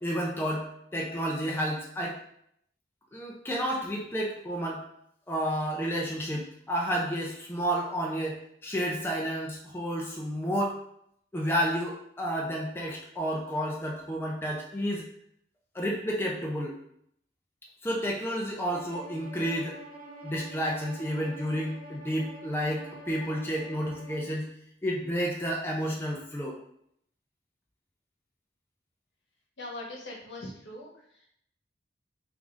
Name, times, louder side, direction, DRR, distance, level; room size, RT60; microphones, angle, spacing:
voice 1, 0.0-2.2 3.1-4.8 5.3-10.8 11.3-15.0 15.7-16.7 17.8-19.8 20.2-24.5 24.8-26.6, equal, 10° left, -2 dB, 0.4 m, -31 dB
Bowed string instrument, 18.7-24.3, right 2 dB, 50° right, 0.6 m, -46 dB
voice 2, 29.6-30.9, left 2 dB, 80° left, -1 dB, 1.0 m, -40 dB
3.4 x 2.5 x 3.5 m, 0.72 s
head